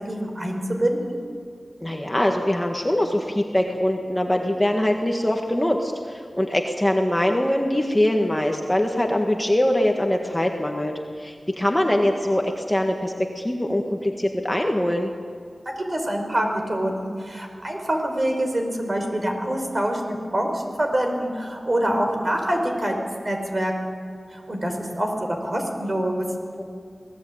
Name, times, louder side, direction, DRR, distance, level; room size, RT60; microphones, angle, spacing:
voice 1, 0.1-1.0 15.9-23.9 24.3-26.2, right 1 dB, 35° right, 3 dB, 4.8 m, -25 dB
voice 2, 1.8-15.1 26.6-26.7, left 1 dB, 10° left, 2 dB, 1.7 m, -23 dB
25.5 x 18.5 x 8.7 m, 2.1 s
wide cardioid pair, 90°, 0 cm